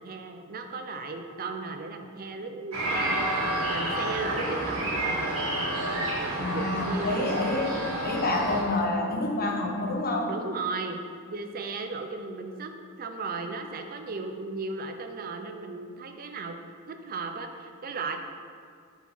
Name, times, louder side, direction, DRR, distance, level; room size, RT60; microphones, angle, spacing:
voice 1, 0.0-5.3 5.8-7.4 10.3-11.0 11.3-16.6 16.9-18.2, right 3 dB, 45° right, 6 dB, 0.5 m, -36 dB
sound 1, 2.7-8.6, right 1 dB, 70° right, 1.4 m, -29 dB
voice 2, 6.4-7.7 8.0-10.3, left 2 dB, 45° left, 1 dB, 0.8 m, -28 dB
4.5 x 4.4 x 5.3 m, 2.3 s
head